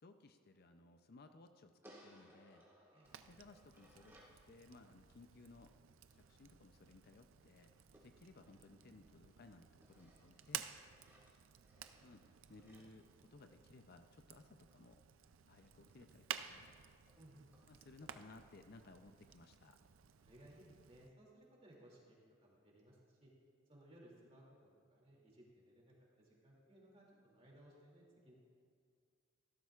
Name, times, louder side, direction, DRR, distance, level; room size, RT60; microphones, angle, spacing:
voice 1, 0.0-2.7 3.3-4.2 4.5-5.7 6.1-7.7 8.0-10.7 12.0-12.2 12.5-15.0 15.5-16.7 17.7-19.8, left 3 dB, 50° left, 7 dB, 0.5 m, -60 dB
sound 1, 1.8-4.4 7.9-9.3 9.8-13.9 15.8-15.9 16.2-16.3 16.7-16.8 17.1-17.2 17.5-17.7 18.0-18.1, equal, 10° right, 2.0 m, -66 dB
Fire, 3.0-21.1, right 9 dB, 75° right, 0.5 m, -54 dB
voice 2, 17.2-17.5 20.2-23.3 23.7-28.3, right 1 dB, 30° right, -3 dB, 2.6 m, -62 dB
16.0 x 12.5 x 2.4 m, 2.2 s
head